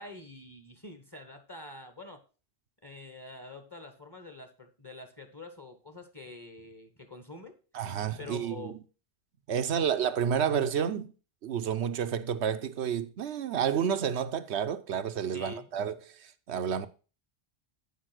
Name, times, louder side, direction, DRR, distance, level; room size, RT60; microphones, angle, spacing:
voice 1, 0.0-2.2 2.8-7.5 8.2-8.7 9.6-9.9 15.3-15.7, left 2 dB, 20° left, 1.4 m, -46 dB
voice 2, 7.7-8.8 9.5-11.1 11.4-16.9, right 8 dB, 80° right, 1.0 m, -30 dB
9.7 x 5.4 x 6.1 m
omnidirectional pair, 1.1 m